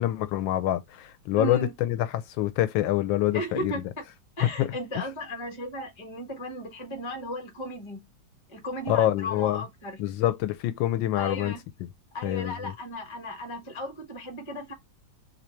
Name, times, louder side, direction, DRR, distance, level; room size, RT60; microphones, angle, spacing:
voice 1, 0.0-3.7 4.6-4.7 4.9-5.0 8.9-9.6 10.0-11.5 12.2-12.7, left 13 dB, 80° left, 1.3 m, -26 dB
voice 2, 1.4-1.7 3.3-3.8 4.4-8.1 8.5-10.0 11.1-11.6 12.1-14.7, equal, 20° left, 0.8 m, -35 dB
3.2 x 2.7 x 4.3 m
omnidirectional pair, 2.1 m